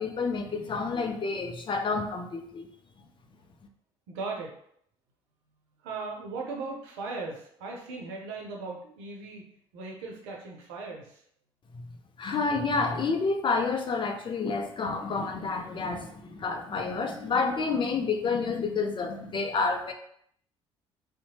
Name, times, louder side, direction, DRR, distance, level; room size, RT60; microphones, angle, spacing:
voice 1, 0.0-2.7 11.7-11.9 12.2-19.9, left 4 dB, 35° left, 5 dB, 0.5 m, -29 dB
voice 2, 4.1-4.5 5.8-9.4 9.7-11.2, right 3 dB, 80° right, -1 dB, 0.6 m, -38 dB
2.8 x 2.1 x 2.7 m, 0.67 s
hypercardioid pair, 55°, 14 cm